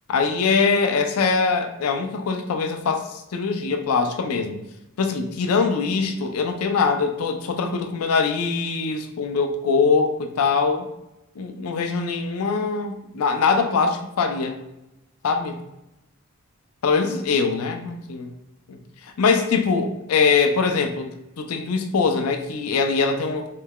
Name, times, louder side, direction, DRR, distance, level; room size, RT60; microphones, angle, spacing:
voice 1, 0.1-4.6 5.0-10.9 11.4-14.6 15.2-15.6 16.8-18.3 18.7-18.8 19.0-23.5, left 4 dB, 85° left, 6 dB, 0.4 m, -22 dB
3.2 x 2.2 x 3.5 m, 0.93 s
head